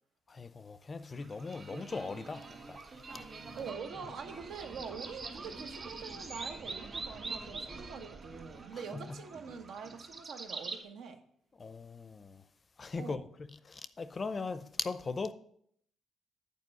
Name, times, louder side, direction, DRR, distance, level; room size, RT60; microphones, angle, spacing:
voice 1, 0.3-2.8 8.9-9.2 11.6-12.4 12.8-13.2 13.6-15.3, left 4 dB, 35° left, 0.5 m, -39 dB
sound 1, 1.1-10.8, right 3 dB, 40° right, 1.8 m, -45 dB
voice 2, 3.5-11.2 12.9-13.3, right 6 dB, 75° right, 0.9 m, -44 dB
8.3 x 4.3 x 6.3 m
cardioid pair, 90°, 0 cm